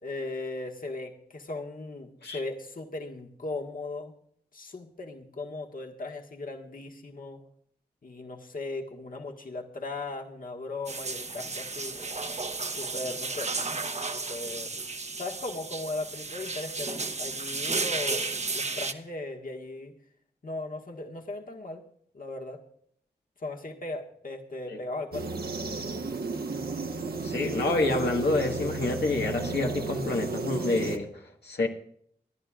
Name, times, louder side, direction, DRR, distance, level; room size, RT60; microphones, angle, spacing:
voice 1, 0.0-4.1 4.5-7.4 8.0-12.0 12.8-13.5 14.1-14.7 15.2-18.3 18.5-19.9 20.4-21.8 22.1-22.6 23.4-25.8, left 2 dB, 55° left, 2 dB, 1.6 m, -37 dB
sound 1, 10.9-18.9, right 3 dB, 40° right, 1.0 m, -33 dB
sound 2, 25.1-31.0, right 3 dB, 65° right, 1.2 m, -33 dB
voice 2, 27.2-31.7, left 2 dB, 75° left, 1 dB, 1.6 m, -28 dB
25.0 x 11.0 x 2.4 m, 0.65 s
cardioid pair, 45°, 17 cm